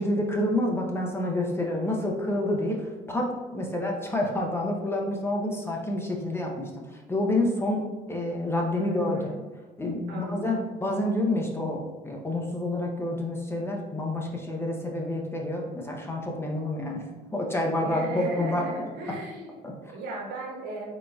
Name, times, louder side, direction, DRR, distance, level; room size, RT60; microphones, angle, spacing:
voice 1, 0.0-9.4 9.8-17.0 17.3-18.6 19.1-19.2 19.6-19.7, left 1 dB, 15° left, 0 dB, 0.6 m, -28 dB
voice 2, 8.7-9.3 10.1-10.7 17.8-19.5 19.8-20.9, right 2 dB, 90° right, -2 dB, 1.1 m, -37 dB
3.9 x 3.7 x 2.3 m, 1.3 s
cardioid pair, 110°, 17 cm